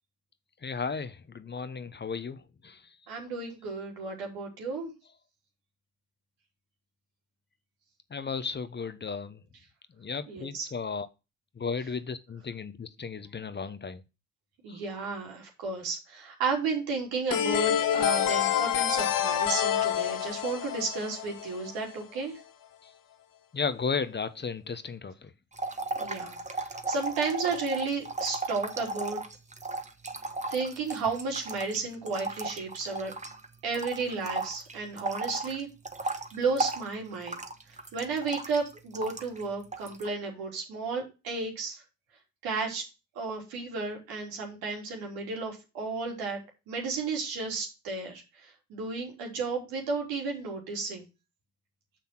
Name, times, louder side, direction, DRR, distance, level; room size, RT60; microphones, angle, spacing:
voice 1, 0.6-2.8 8.1-9.4 10.0-11.1 11.6-14.0 14.7-14.8 22.8-22.9 23.5-25.3, left 5 dB, 30° left, 1.0 m, -34 dB
voice 2, 3.1-4.9 10.3-10.7 14.6-22.4 26.0-29.2 30.5-33.1 33.6-35.7 36.0-37.4 37.7-41.8 42.4-42.9 43.2-46.4 46.7-51.0, right 4 dB, 80° right, 3.6 m, -33 dB
sound 1, 17.3-21.9, left 10 dB, 65° left, 1.3 m, -27 dB
sound 2, 25.5-33.5 33.7-39.4 39.7-40.1, right 2 dB, 20° right, 1.4 m, -35 dB
6.8 x 5.9 x 6.0 m
hypercardioid pair, 60°, 36 cm